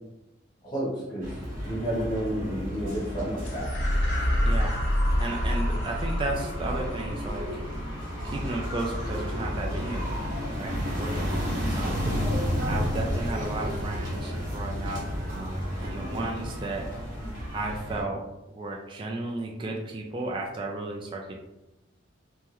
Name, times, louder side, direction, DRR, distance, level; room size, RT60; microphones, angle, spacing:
voice 1, 0.6-1.4 1.6-3.7, right 1 dB, 20° left, -9 dB, 1.1 m, -31 dB
sound 1, 1.2-18.0, equal, 45° right, 1.1 m, -32 dB
sound 2, 3.4-12.1, equal, 60° left, 0.7 m, -30 dB
voice 2, 4.4-4.8 5.2-7.5 8.2-10.2 10.6-12.1 12.7-15.0 15.3-17.1 17.5-18.2 18.5-21.3, right 2 dB, 25° right, -1 dB, 0.3 m, -34 dB
3.5 x 2.1 x 2.9 m, 0.95 s
head